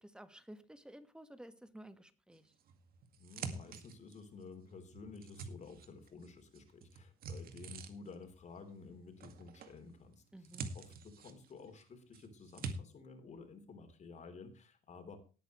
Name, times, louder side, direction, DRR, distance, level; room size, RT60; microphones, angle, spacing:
voice 1, 0.0-2.4 10.3-10.7, right 1 dB, 5° right, 11 dB, 1.6 m, -53 dB
sound 1, 2.6-4.4 4.9-6.3 6.5-8.2 9.2-9.8 10.1-11.8 12.1-12.7, right 5 dB, 60° right, 2.0 m, -46 dB
voice 2, 3.2-15.2, left 4 dB, 45° left, 7 dB, 3.5 m, -53 dB
18.0 x 9.2 x 3.2 m, 0.33 s
cardioid pair, 110°, 17 cm